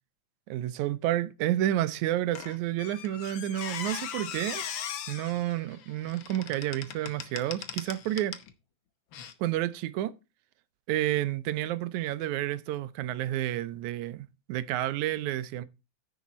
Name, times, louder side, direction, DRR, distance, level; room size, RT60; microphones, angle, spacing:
voice 1, 0.5-4.7 5.1-8.4 9.4-10.1 10.9-15.6, right 13 dB, 80° right, 2.1 m, -30 dB
Squeak, 2.3-8.5 9.1-9.3, left 9 dB, 70° left, 1.1 m, -39 dB
10.0 x 7.3 x 4.1 m
omnidirectional pair, 3.4 m